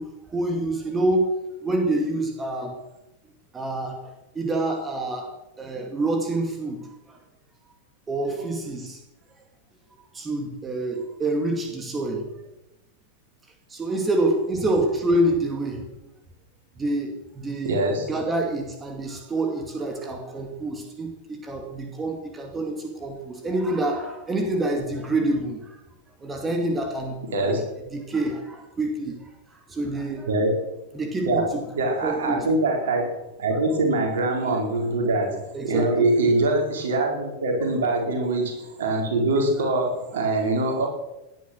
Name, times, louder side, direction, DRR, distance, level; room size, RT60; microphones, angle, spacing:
voice 1, 0.0-1.3 1.6-2.8 3.5-7.2 8.1-9.0 10.1-12.3 13.7-15.9 16.8-17.8 18.1-25.8 26.2-27.6 27.9-30.3 30.9-31.6 32.0-32.5 35.5-36.1 39.6-39.7, right 2 dB, 15° right, 4 dB, 2.4 m, -27 dB
voice 2, 17.6-18.1 27.3-27.6 30.3-30.6 31.2-31.4 31.7-33.1 33.4-40.9, right 2 dB, 60° right, 1 dB, 4.6 m, -23 dB
18.5 x 10.5 x 6.3 m, 0.94 s
figure-of-eight pair, 90°, 0 cm